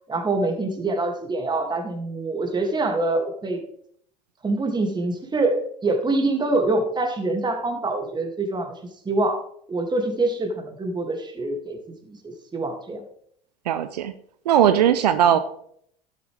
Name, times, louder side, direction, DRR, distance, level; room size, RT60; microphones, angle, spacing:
voice 1, 0.1-3.6 4.4-5.6 5.8-8.8 9.0-9.4 9.7-11.8 12.1-13.0, right 2 dB, 20° right, 4 dB, 2.5 m, -25 dB
voice 2, 13.7-14.1 14.5-15.4, right 10 dB, 80° right, 11 dB, 0.6 m, -18 dB
12.0 x 8.5 x 3.5 m, 0.65 s
hypercardioid pair, 75°, 21 cm